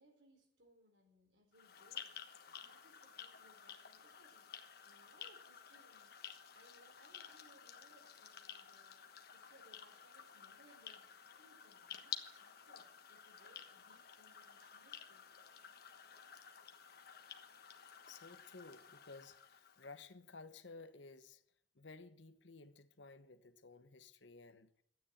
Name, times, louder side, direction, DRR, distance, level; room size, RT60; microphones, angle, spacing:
voice 1, 0.0-2.2 2.6-4.5 4.8-15.3, right 1 dB, 75° right, 4.3 m, -68 dB
sound 1, 1.5-20.0, left 8 dB, 55° left, 1.3 m, -53 dB
voice 2, 18.1-21.4 21.7-24.7, left 3 dB, 75° left, 1.0 m, -55 dB
13.0 x 9.4 x 8.9 m
head